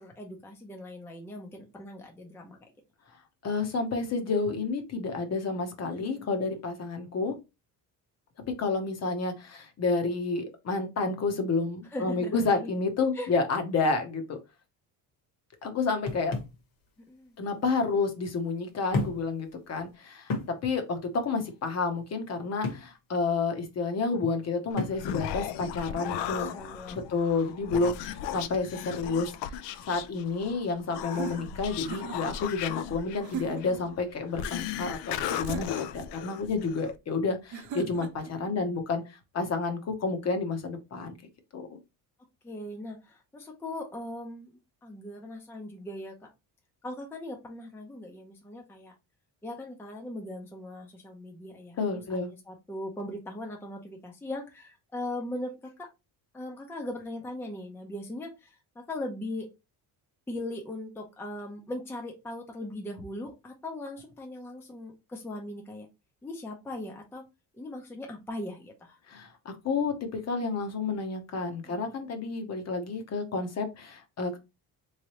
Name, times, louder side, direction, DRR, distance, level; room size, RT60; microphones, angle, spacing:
voice 1, 0.0-2.7 5.8-6.6 11.9-12.7 13.1-13.3 17.1-17.4 26.4-27.1 42.4-46.3 46.8-48.9 49.4-55.9 56.3-59.5 60.3-65.9 66.2-67.2 67.5-69.0 71.6-72.1, left 1 dB, 5° left, 1 dB, 0.6 m, -39 dB
voice 2, 3.4-7.3 8.5-14.4 15.6-16.4 17.4-26.5 26.9-41.2 41.5-41.8 51.8-52.3 69.1-74.4, left 4 dB, 40° left, 6 dB, 0.8 m, -30 dB
sound 1, 16.1-16.6 17.7-17.8 18.9-19.3 19.7-19.8 20.3-20.6 22.6-22.9 24.8-25.1, left 2 dB, 55° left, 1.3 m, -32 dB
Human voice, 24.7-36.9, left 10 dB, 75° left, 0.5 m, -36 dB
sound 2, 31.1-32.4 33.2-33.8 35.3-36.1 37.5-38.3, right 6 dB, 45° right, 0.7 m, -38 dB
3.5 x 3.2 x 2.9 m, 0.25 s
cardioid pair, 145°, 42 cm